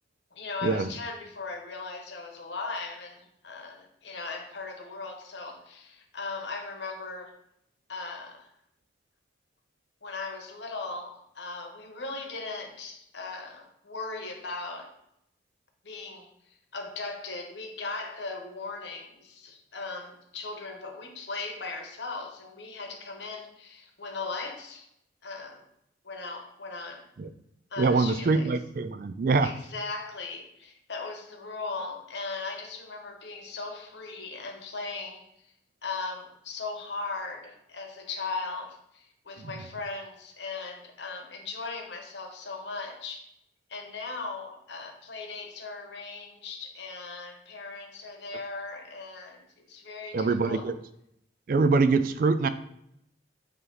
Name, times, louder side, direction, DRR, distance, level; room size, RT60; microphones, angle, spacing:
voice 1, 0.3-7.3 7.9-8.5 10.0-14.9 15.8-16.3 16.7-24.9 25.2-25.6 26.0-27.0 27.7-28.5 29.4-35.3 35.8-43.3 43.7-50.7, left 3 dB, 70° left, 3 dB, 1.1 m, -38 dB
voice 2, 27.8-29.5 39.4-39.5 50.1-50.8 51.5-52.5, right 4 dB, 50° right, 12 dB, 0.3 m, -24 dB
8.0 x 3.0 x 3.9 m, 0.76 s
head